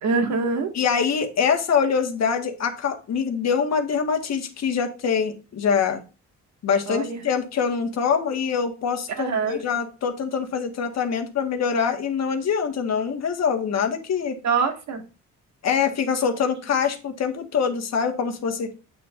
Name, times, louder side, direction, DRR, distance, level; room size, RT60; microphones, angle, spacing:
voice 1, 0.0-0.7 6.9-7.2 9.1-9.6 14.4-15.0, right 5 dB, 65° right, 5 dB, 1.9 m, -24 dB
voice 2, 0.7-6.0 6.6-14.4 15.6-18.7, left 6 dB, 60° left, 5 dB, 1.6 m, -24 dB
8.3 x 7.1 x 2.5 m, 0.31 s
cardioid pair, 90°, 30 cm